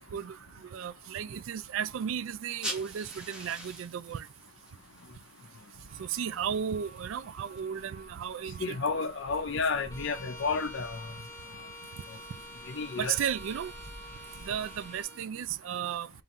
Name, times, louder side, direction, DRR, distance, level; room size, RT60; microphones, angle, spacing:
voice 1, 0.1-4.3 6.0-9.1 13.0-13.7 14.4-16.1, right 8 dB, 70° right, 0.3 m, -34 dB
sound 1, 2.4-7.6, right 1 dB, 5° right, 1.1 m, -44 dB
sound 2, 5.9-15.0, right 2 dB, 30° right, 0.6 m, -51 dB
voice 2, 8.6-11.1 12.7-13.2, left 4 dB, 60° left, 0.6 m, -31 dB
Bowed string instrument, 9.9-15.3, left 2 dB, 15° left, 0.7 m, -48 dB
3.7 x 2.6 x 4.2 m
head